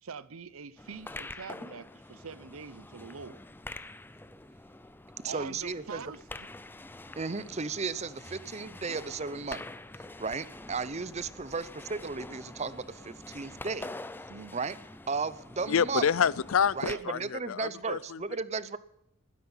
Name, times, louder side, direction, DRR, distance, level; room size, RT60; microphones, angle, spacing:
voice 1, 0.0-3.4 5.3-6.5 14.3-14.6 16.8-17.0, right 5 dB, 85° right, 0.7 m, -44 dB
sound 1, 0.8-17.0, left 2 dB, 10° left, 0.5 m, -46 dB
voice 2, 5.2-6.0 7.2-9.6 10.2-13.9 14.5-14.8 15.1-16.1 16.8-18.8, right 4 dB, 30° right, 0.7 m, -34 dB
voice 3, 15.7-18.2, left 7 dB, 75° left, 0.5 m, -28 dB
20.0 x 10.0 x 5.6 m
head